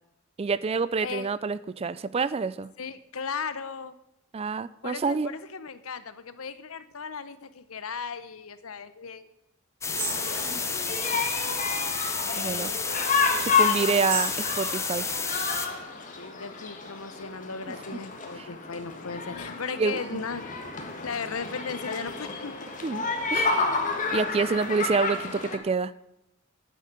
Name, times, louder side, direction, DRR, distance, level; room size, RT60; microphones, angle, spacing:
voice 1, 0.4-2.7 4.3-5.3 12.4-12.7 13.4-15.1 17.9-18.0 19.8-20.0 22.8-23.6 24.1-25.9, right 4 dB, 30° right, 17 dB, 0.4 m, -27 dB
voice 2, 2.8-4.0 4.8-9.3 10.3-10.8 16.2-22.6, left 5 dB, 80° left, 13 dB, 0.9 m, -36 dB
sound 1, 9.8-15.7, left 5 dB, 15° left, 0.7 m, -31 dB
sound 2, 9.9-25.6, left 4 dB, 40° left, 1.6 m, -30 dB
sound 3, 10.0-15.8, right 3 dB, 75° right, 5.6 m, -40 dB
10.5 x 9.0 x 6.7 m, 0.86 s
head